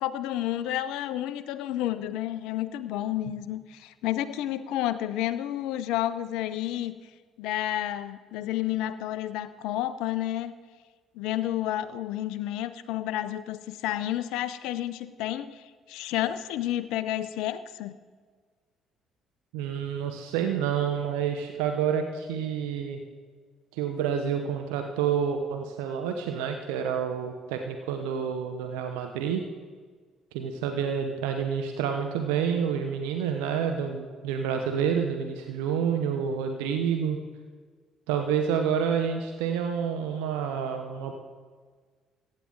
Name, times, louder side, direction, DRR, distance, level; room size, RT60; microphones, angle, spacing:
voice 1, 0.0-6.9 7.4-10.5 11.2-18.0, left 13 dB, 75° left, 14 dB, 0.4 m, -30 dB
voice 2, 19.5-23.0 23.7-29.4 30.3-37.2 38.1-41.1, right 7 dB, 80° right, 5 dB, 0.7 m, -28 dB
15.0 x 9.1 x 3.8 m, 1.5 s
hypercardioid pair, 55°, 0 cm